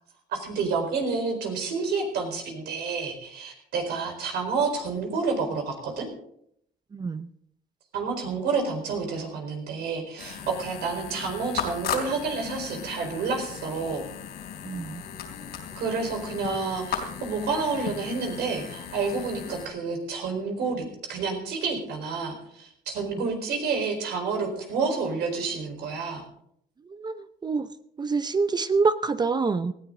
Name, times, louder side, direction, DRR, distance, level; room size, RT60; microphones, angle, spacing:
voice 1, 0.3-6.1 7.9-14.0 15.7-20.8 21.1-26.2, right 4 dB, 75° right, 4 dB, 4.4 m, -29 dB
voice 2, 6.9-7.3 14.6-15.0 26.9-27.7 28.0-29.7, right 4 dB, 25° right, 13 dB, 0.6 m, -26 dB
sound 1, 10.2-19.7, left 8 dB, 75° left, 3.6 m, -36 dB
18.5 x 15.0 x 3.8 m, 0.71 s
cardioid pair, 110°, 17 cm